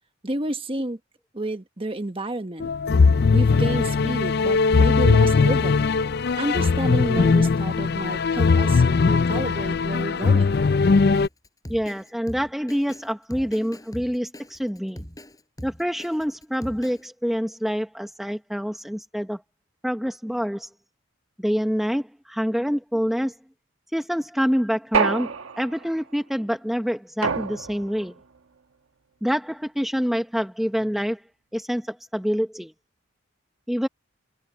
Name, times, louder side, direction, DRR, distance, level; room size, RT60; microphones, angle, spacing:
voice 1, 0.2-1.0 1.3-2.7 3.3-5.9 6.4-10.6, right 1 dB, 25° right, 1.3 m, -30 dB
sound 1, 2.6-11.3, left 4 dB, 50° left, 0.4 m, -19 dB
Drum kit, 11.1-17.1, equal, 20° left, 5.1 m, -41 dB
voice 2, 11.7-15.0 15.6-19.4 19.8-20.7 21.4-23.3 23.9-28.1 29.2-31.2 31.5-32.7 33.7-33.9, equal, ahead, 0.8 m, -26 dB
sound 2, 24.9-25.9 27.2-28.1, right 5 dB, 90° right, 1.2 m, -26 dB
head